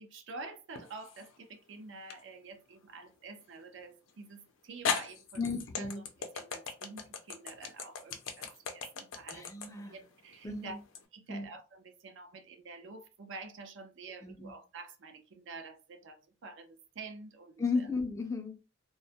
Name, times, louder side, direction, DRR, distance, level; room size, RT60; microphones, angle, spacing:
voice 1, 0.0-5.4 5.8-5.9 6.3-9.5 9.8-10.8 11.1-17.9, right 3 dB, 65° right, 0.5 m, -48 dB
sound 1, 0.7-1.3 2.1-2.2 4.1-4.2 4.8-11.0, left 6 dB, 85° left, 0.5 m, -37 dB
voice 2, 5.4-6.0 9.3-10.0 10.4-10.8 11.3-11.5 14.2-14.5 17.6-18.6, left 4 dB, 15° left, 0.3 m, -34 dB
2.2 x 2.0 x 2.7 m
head